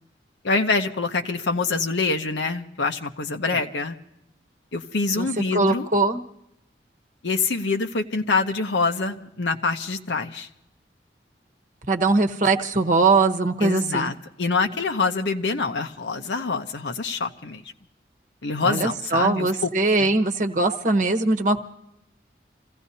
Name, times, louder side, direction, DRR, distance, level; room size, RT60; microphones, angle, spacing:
voice 1, 0.4-4.0 4.7-5.9 7.2-10.5 13.6-17.6 18.4-19.7 20.0-20.1, left 4 dB, 90° left, 5 dB, 0.9 m, -25 dB
voice 2, 5.1-6.2 11.9-14.1 18.6-21.6, right 3 dB, 45° right, 5 dB, 1.0 m, -21 dB
28.0 x 16.0 x 2.8 m, 0.82 s
head